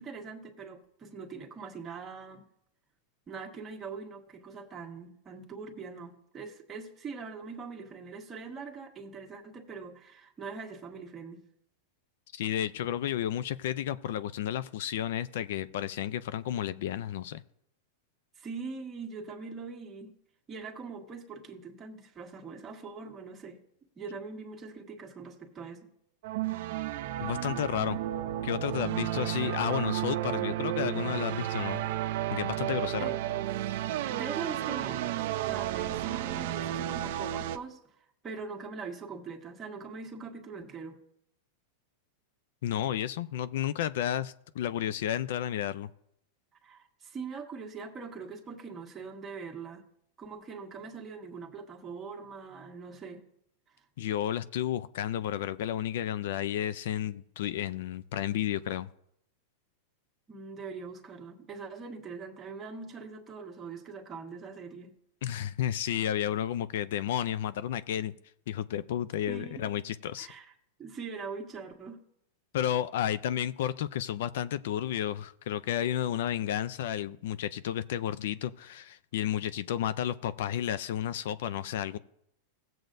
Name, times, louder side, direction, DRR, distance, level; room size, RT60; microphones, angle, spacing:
voice 1, 0.0-2.5 3.3-11.4 18.4-20.1 20.5-23.6 24.0-25.9 32.6-33.2 34.1-37.9 38.2-41.0 46.6-49.8 50.2-53.2 53.7-53.8 60.3-64.9 69.3-69.7 70.2-70.4 70.8-72.0, right 5 dB, 20° right, 1.4 m, -42 dB
voice 2, 12.3-17.4 27.2-28.0 28.4-31.8 32.3-33.1 42.6-45.9 54.0-58.9 65.2-68.1 68.5-70.3 72.5-82.0, left 11 dB, 70° left, 0.4 m, -32 dB
sound 1, 26.2-37.6, right 13 dB, 65° right, 0.5 m, -32 dB
16.0 x 7.6 x 2.6 m
supercardioid pair, 135°, 0 cm